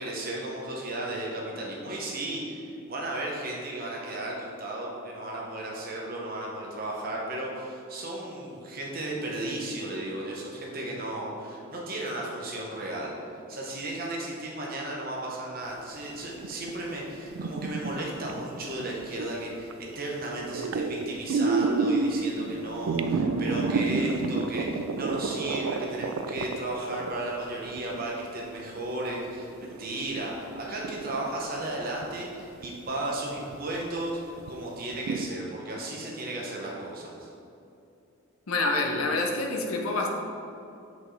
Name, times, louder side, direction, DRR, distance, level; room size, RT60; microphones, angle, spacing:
voice 1, 0.0-2.6 2.9-13.1 13.5-37.3, right 1 dB, 45° right, -3 dB, 1.0 m, -34 dB
sound 1, 16.3-19.3 19.7-20.0 20.2-28.2 28.8-28.9 29.3-31.7 32.0-32.2 32.6-32.7 33.4-33.6 34.0-34.1 34.4-34.5 34.9-35.2, right 4 dB, 75° right, 0.3 m, -29 dB
voice 2, 38.5-40.1, left 2 dB, 85° left, 1 dB, 0.7 m, -27 dB
6.2 x 5.2 x 3.2 m, 2.7 s
head